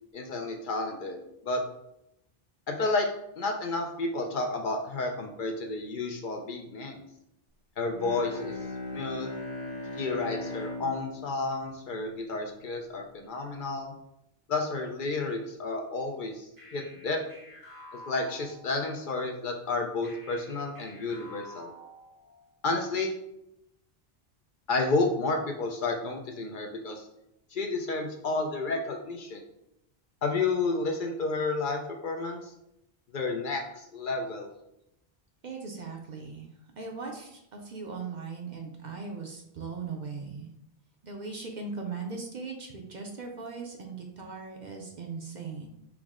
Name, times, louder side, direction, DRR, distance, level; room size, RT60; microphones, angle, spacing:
voice 1, 0.1-1.2 1.4-1.6 2.7-3.1 3.4-7.0 7.8-8.5 8.9-9.3 10.0-13.9 14.5-17.2 18.1-21.7 22.6-23.1 24.7-27.1 27.5-29.4 30.2-32.5 33.1-34.5, left 3 dB, 60° left, 3 dB, 0.6 m, -31 dB
Bowed string instrument, 7.9-12.8, left 2 dB, 85° left, 1.2 m, -39 dB
sound 1, 16.6-19.1 20.0-22.5, equal, 90° right, 2.0 m, -50 dB
voice 2, 35.4-36.5 36.8-40.5 41.0-45.7, right 4 dB, 55° right, 1 dB, 0.6 m, -39 dB
4.6 x 2.0 x 3.5 m, 0.80 s
omnidirectional pair, 1.1 m